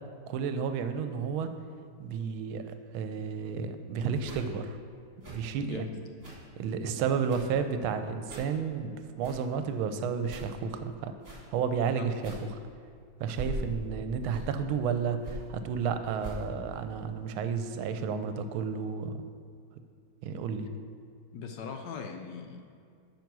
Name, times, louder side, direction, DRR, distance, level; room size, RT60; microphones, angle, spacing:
voice 1, 0.3-1.5 2.0-4.8 5.3-5.9 6.6-8.9 9.2-11.1 11.5-12.6 13.2-19.2 20.2-20.7, right 6 dB, 85° right, 9 dB, 1.4 m, -32 dB
sound 1, 4.2-4.4 5.2-5.5 6.2-6.5 7.2-7.6 8.2-8.5 9.2-9.5 10.2-10.5 11.2-11.5 12.2-12.5 13.2-13.8 14.2-14.6 15.2-15.5 16.2-16.5, right 1 dB, 30° right, 2.3 m, -41 dB
voice 2, 5.6-6.0 21.3-22.7, left 6 dB, 70° left, 5 dB, 1.2 m, -40 dB
9.1 x 5.4 x 6.1 m, 2.2 s
omnidirectional pair, 2.3 m